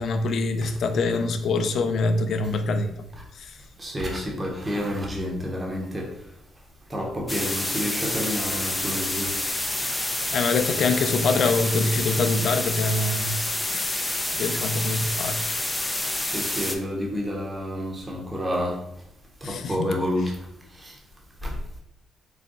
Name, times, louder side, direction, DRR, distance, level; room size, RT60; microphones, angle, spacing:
voice 1, 0.0-3.0 3.4-3.6 10.3-13.4 13.7-15.4 19.4-20.0, left 3 dB, 65° left, 7 dB, 0.4 m, -25 dB
voice 2, 3.8-6.1 6.9-9.3 16.2-18.8 19.4-20.4 20.7-20.9 21.4-21.5, equal, 20° right, -1 dB, 1.0 m, -29 dB
sound 1, 7.3-16.7, left 1 dB, 15° left, 0.5 m, -28 dB
4.0 x 2.2 x 3.7 m, 0.77 s
cardioid pair, 90°, 0 cm